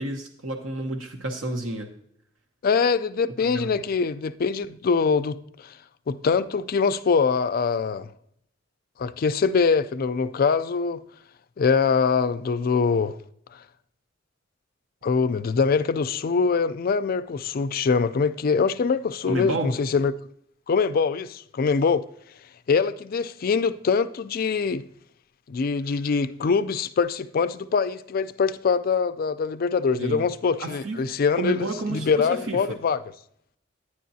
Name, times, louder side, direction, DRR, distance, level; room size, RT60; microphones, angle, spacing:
voice 1, 0.0-1.9 3.5-3.8 19.3-19.7 30.0-30.2 30.6-31.0 31.3-32.6, right 2 dB, 85° right, 0.9 m, -30 dB
voice 2, 2.6-5.4 5.6-5.7 6.1-8.1 9.0-11.0 11.6-13.2 15.0-20.1 20.7-22.0 22.7-24.9 25.5-33.0, left 5 dB, 50° left, 0.4 m, -23 dB
10.0 x 9.9 x 2.7 m
head